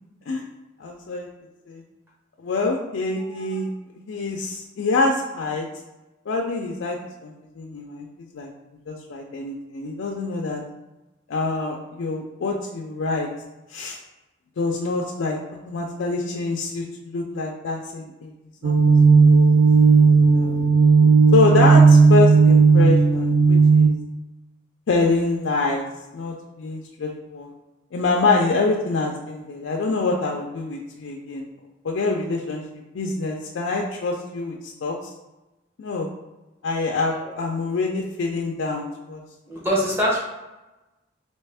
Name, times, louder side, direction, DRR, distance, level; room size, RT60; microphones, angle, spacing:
voice 1, 0.8-1.3 1.7-1.8 2.4-3.7 4.1-5.7 6.3-8.5 8.9-10.6 11.3-13.3 13.7-14.0 14.6-15.4 15.7-18.3 18.6-18.7 19.2-19.5 20.1-20.5 21.3-23.9 24.9-25.8 26.1-27.5 27.9-31.4 31.8-35.1 35.8-36.1 36.6-39.2, left 3 dB, 75° left, 0 dB, 0.4 m, -25 dB
voice 2, 3.3-3.6 37.2-37.3 39.5-40.2, equal, 15° right, -5 dB, 0.9 m, -24 dB
sound 1, 18.6-23.9, right 4 dB, 75° right, 0.3 m, -14 dB
3.3 x 2.9 x 3.4 m, 1.0 s
head